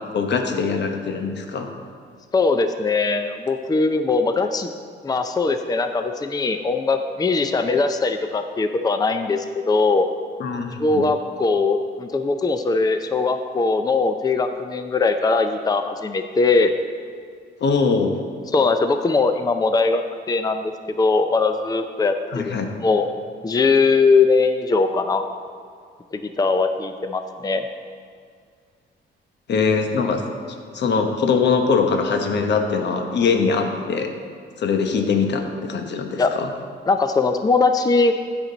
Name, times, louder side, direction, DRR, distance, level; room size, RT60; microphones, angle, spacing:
voice 1, 0.1-1.7 10.4-11.0 17.6-18.1 22.3-22.7 29.5-30.2 30.7-34.1 34.6-36.5, left 5 dB, 60° left, 5 dB, 1.0 m, -22 dB
voice 2, 2.3-4.7 5.0-10.1 10.8-16.7 18.5-23.1 23.4-25.2 26.1-27.6 36.2-36.3 36.9-38.1, left 4 dB, 20° left, 7 dB, 0.5 m, -20 dB
15.0 x 6.0 x 4.0 m, 2.1 s
cardioid pair, 90°, 20 cm